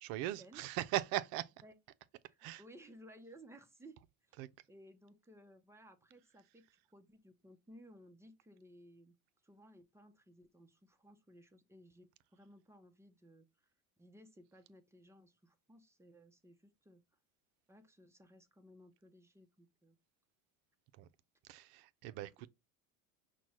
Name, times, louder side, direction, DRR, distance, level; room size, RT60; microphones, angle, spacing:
voice 1, 0.0-1.5 2.4-2.6 4.4-4.5 21.0-21.1 21.5-22.3, right 14 dB, 65° right, 0.6 m, -39 dB
voice 2, 2.3-4.0 4.3-6.6 6.9-9.2 9.4-13.7 14.0-17.0 17.7-20.0 22.1-22.5, equal, 5° right, 0.7 m, -59 dB
5.8 x 2.3 x 3.0 m
supercardioid pair, 115°, 40 cm